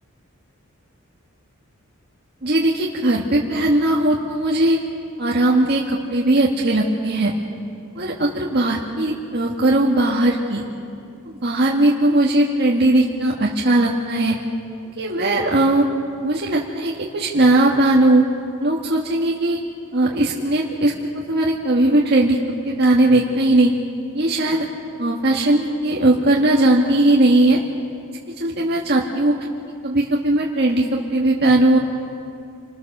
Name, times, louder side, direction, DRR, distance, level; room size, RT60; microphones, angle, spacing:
voice 1, 2.4-4.8 5.2-7.3 7.9-10.6 11.2-14.4 15.0-15.8 16.2-18.3 18.6-19.6 19.9-22.4 22.6-23.7 24.1-24.6 25.0-27.6 28.4-29.3 29.8-31.8, right 1 dB, 50° right, -2 dB, 1.8 m, -18 dB
28.0 x 21.0 x 6.7 m, 2.5 s
head